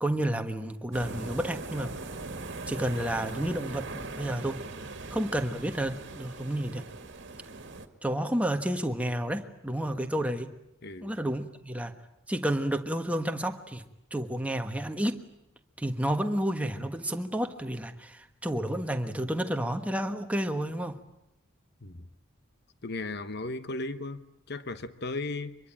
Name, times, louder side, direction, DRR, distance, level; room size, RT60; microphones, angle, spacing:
voice 1, 0.0-1.9 2.7-4.6 5.1-6.8 8.0-10.5 11.0-11.9 12.3-13.8 14.1-15.2 15.8-21.0, right 1 dB, 5° right, 1.4 m, -30 dB
sound 1, 0.9-7.9, right 3 dB, 55° right, 1.9 m, -40 dB
voice 2, 10.8-11.2 21.8-22.1 22.8-25.6, left 2 dB, 55° left, 1.1 m, -36 dB
25.0 x 22.5 x 8.8 m
head